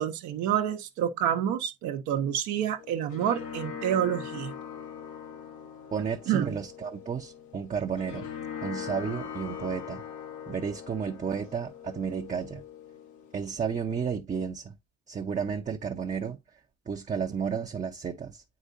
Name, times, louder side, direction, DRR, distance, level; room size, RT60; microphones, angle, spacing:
voice 1, 0.0-4.5 6.3-6.6, right 10 dB, 70° right, 0.9 m, -28 dB
sound 1, 2.8-13.7, left 8 dB, 80° left, 1.3 m, -41 dB
voice 2, 5.9-8.3 8.6-10.0 10.5-12.6 13.3-14.7 15.1-16.4 16.9-18.4, right 6 dB, 25° right, 0.7 m, -32 dB
8.0 x 4.9 x 2.6 m
supercardioid pair, 75°, 29 cm